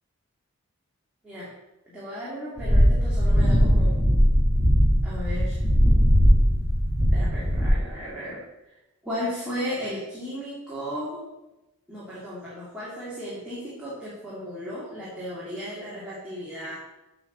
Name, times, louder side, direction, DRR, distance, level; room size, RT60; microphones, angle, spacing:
voice 1, 1.9-4.0 5.0-5.6 7.1-8.4 8.7-8.8 9.0-11.2 11.9-16.8, equal, 5° right, -10 dB, 2.3 m, -35 dB
sound 1, 2.6-7.7, equal, 15° left, 1.6 m, -19 dB
8.5 x 4.9 x 6.5 m, 0.99 s
head